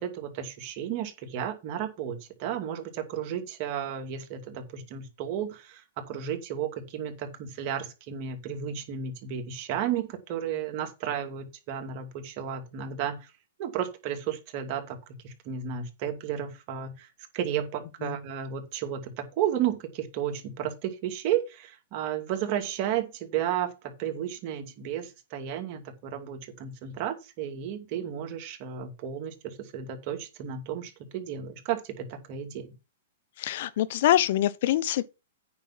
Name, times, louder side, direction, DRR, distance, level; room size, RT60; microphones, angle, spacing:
voice 1, 0.0-13.2 13.6-15.0 15.2-17.1 17.3-32.7, right 9 dB, 45° right, 2.4 m, -33 dB
voice 2, 33.4-35.1, left 13 dB, 55° left, 0.9 m, -25 dB
8.9 x 5.6 x 5.7 m
hypercardioid pair, 120°, 0 cm